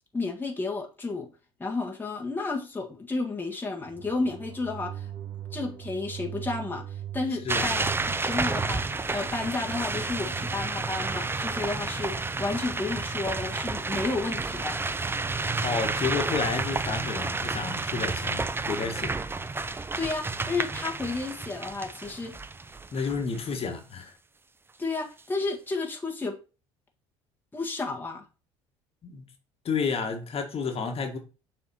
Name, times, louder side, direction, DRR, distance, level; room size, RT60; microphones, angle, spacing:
voice 1, 0.1-1.3 1.6-5.1 5.5-14.8 20.0-22.3 24.8-26.4 27.5-28.2, left 3 dB, 15° left, 1.7 m, -32 dB
sound 1, 3.8-11.1, right 11 dB, 40° right, 3.3 m, -41 dB
sound 2, 7.5-23.4, right 3 dB, 15° right, 0.7 m, -31 dB
voice 2, 15.6-19.1 22.9-24.1 29.0-29.2 29.7-31.2, left 5 dB, 40° left, 1.8 m, -31 dB
7.1 x 4.3 x 4.2 m
hypercardioid pair, 65°, 15 cm